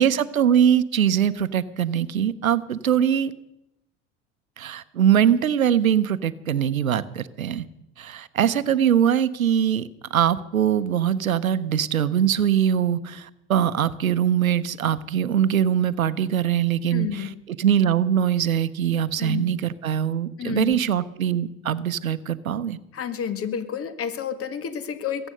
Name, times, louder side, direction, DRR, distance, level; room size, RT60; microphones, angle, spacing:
voice 1, 0.0-3.3 4.6-7.6 8.0-22.8, right 9 dB, 90° right, 14 dB, 0.8 m, -22 dB
voice 2, 16.9-17.3 19.2-19.5 20.4-20.8 22.9-25.3, left 8 dB, 35° left, 12 dB, 1.5 m, -30 dB
21.5 x 8.9 x 6.6 m, 0.85 s
hypercardioid pair, 70°, 40 cm